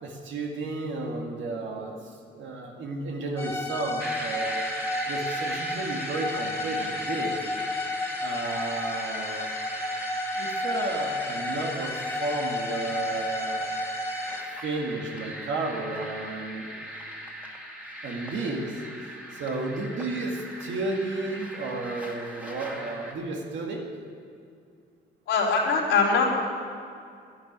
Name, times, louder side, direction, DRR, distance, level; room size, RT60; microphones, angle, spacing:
voice 1, 0.0-4.6 5.1-7.4 8.2-9.5 10.4-11.9 12.2-13.7 14.3-14.4 14.6-16.8 18.0-18.8 19.3-23.9, right 3 dB, 70° right, 0 dB, 2.0 m, -32 dB
sound 1, 3.4-14.5, left 1 dB, 10° left, 2.3 m, -32 dB
sound 2, 4.0-23.1, right 1 dB, 5° right, 2.5 m, -39 dB
voice 2, 25.3-26.2, left 5 dB, 85° left, -8 dB, 4.0 m, -22 dB
11.5 x 10.5 x 9.5 m, 2.3 s
cardioid pair, 90°, 20 cm